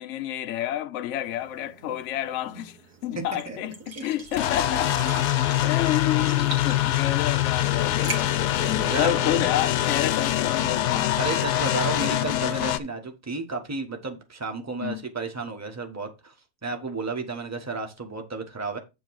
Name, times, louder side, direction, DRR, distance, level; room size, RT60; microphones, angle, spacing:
voice 1, 0.0-2.8 3.0-5.0 5.6-8.3 8.6-11.2 14.8-15.0, left 11 dB, 60° left, 0.9 m, -29 dB
sound 1, 1.2-9.7, right 3 dB, 70° right, 2.3 m, -42 dB
voice 2, 3.1-3.7 6.1-6.3 8.6-9.4 11.2-16.3 16.6-18.8, right 3 dB, 10° right, 1.0 m, -33 dB
sound 2, 4.4-12.8, left 13 dB, 75° left, 1.2 m, -24 dB
9.2 x 3.1 x 6.2 m
omnidirectional pair, 1.7 m